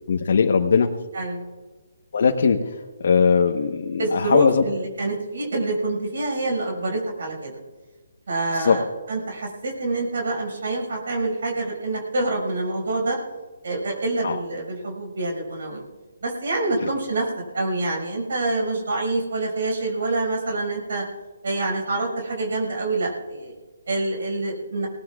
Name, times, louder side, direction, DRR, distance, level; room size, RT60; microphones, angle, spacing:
voice 1, 0.1-0.9 2.1-2.7 3.0-4.6 8.6-8.8 14.2-14.4, left 5 dB, 55° left, 3 dB, 1.1 m, -19 dB
voice 2, 1.1-1.5 4.0-7.5 8.3-13.2 13.6-15.8 16.2-21.0 21.4-23.5 23.9-24.9, right 2 dB, 65° right, 0 dB, 5.7 m, -26 dB
23.5 x 19.0 x 2.4 m, 1.3 s
hypercardioid pair, 165°, 0 cm